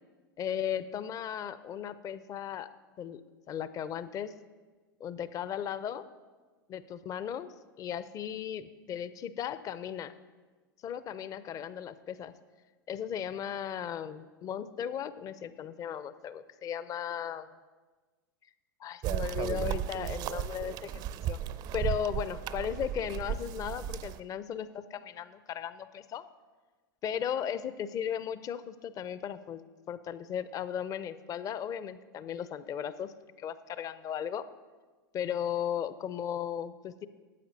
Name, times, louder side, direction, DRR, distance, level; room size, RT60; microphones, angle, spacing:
voice 1, 0.4-2.7 3.0-3.2 3.5-4.3 5.0-6.1 6.7-7.5 7.8-10.1 10.8-12.3 12.9-17.5 18.8-21.4 21.7-26.2 27.0-29.6 29.9-34.5 35.1-37.1, left 9 dB, 30° left, 15 dB, 0.5 m, -36 dB
sound 1, 19.0-24.2, right 10 dB, 40° right, 0.4 m, -35 dB
12.5 x 8.1 x 4.0 m, 1.3 s
figure-of-eight pair, 90°, 12 cm